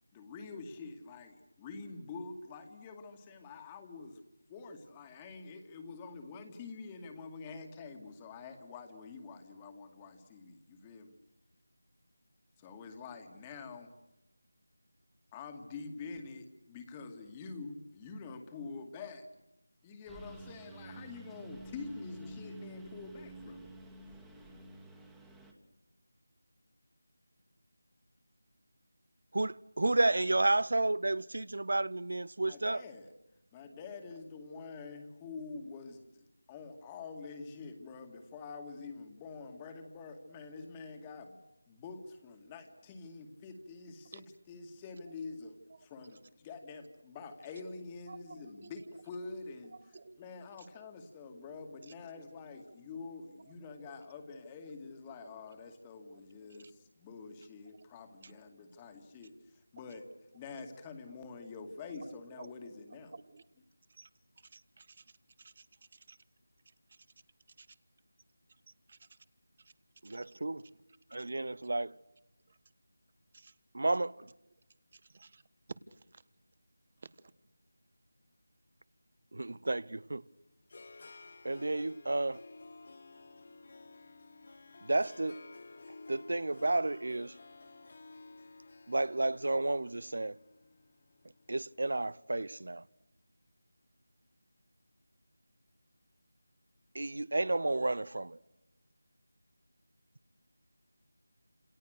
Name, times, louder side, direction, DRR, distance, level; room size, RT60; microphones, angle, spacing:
voice 1, 0.1-4.2 4.5-11.1 12.6-13.9 15.3-19.3 19.8-23.7 32.4-33.1 33.5-41.4 41.7-49.7 50.2-60.1 60.3-63.1, left 4 dB, 15° left, 2.3 m, -46 dB
Engine, 20.1-25.5, right 1 dB, 5° right, 2.1 m, -50 dB
voice 2, 29.3-32.8 70.0-70.7 71.1-72.0 73.7-74.3 79.3-80.2 81.4-82.4 84.8-85.4 86.1-87.3 88.9-90.4 91.5-92.8 96.9-98.4, right 2 dB, 65° right, 1.0 m, -31 dB
voice 3, 48.1-48.7 49.7-50.2 51.8-52.2 53.5-53.6 55.2-55.4 56.1-56.2 56.5-56.7 57.8-57.9 58.2-58.3 61.9-62.5 63.1-63.4 63.9-64.1 64.4-65.7 65.9-66.2 66.9-67.0 67.6-67.7 68.7-69.2 69.6-69.7 70.0-70.3 71.1-71.3 72.5-72.6 73.3-73.5 74.9-75.4 75.9-76.2 77.0-77.3, right 4 dB, 35° right, 1.5 m, -55 dB
Harp, 80.0-92.2, left 3 dB, 40° left, 1.7 m, -54 dB
30.0 x 28.0 x 6.7 m
figure-of-eight pair, 170°, 0 cm